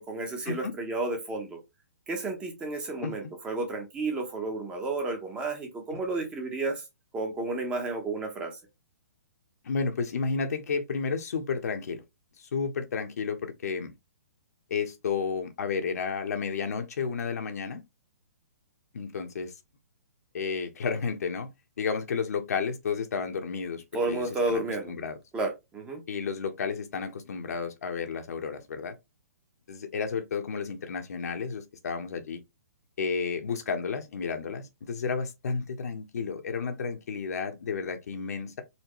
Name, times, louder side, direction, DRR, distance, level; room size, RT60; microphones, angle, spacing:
voice 1, 0.0-1.6 2.1-6.8 7.1-8.5 23.9-24.9 25.3-26.0, right 2 dB, 10° right, 0.8 m, -31 dB
voice 2, 9.6-12.0 12.5-13.9 14.7-17.8 18.9-19.5 20.3-21.5 21.8-24.6 24.9-25.2 26.1-28.9 29.7-32.4 33.0-38.6, left 5 dB, 70° left, 1.0 m, -32 dB
4.3 x 2.7 x 3.0 m
hypercardioid pair, 165°, 9 cm